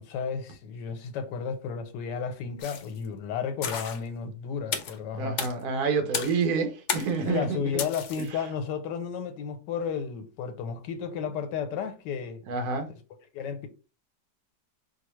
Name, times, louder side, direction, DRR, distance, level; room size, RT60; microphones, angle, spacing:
voice 1, 0.0-5.4 7.2-12.4 13.3-13.7, left 6 dB, 85° left, 1.3 m, -33 dB
sound 1, 2.6-3.0 3.6-4.0 4.7-5.0 5.4-5.5 6.1-6.4 6.9-7.2 7.8-8.3, left 7 dB, 70° left, 0.7 m, -32 dB
voice 2, 5.2-7.6 12.5-12.9, right 5 dB, 65° right, 1.3 m, -28 dB
4.6 x 2.2 x 3.0 m
omnidirectional pair, 1.8 m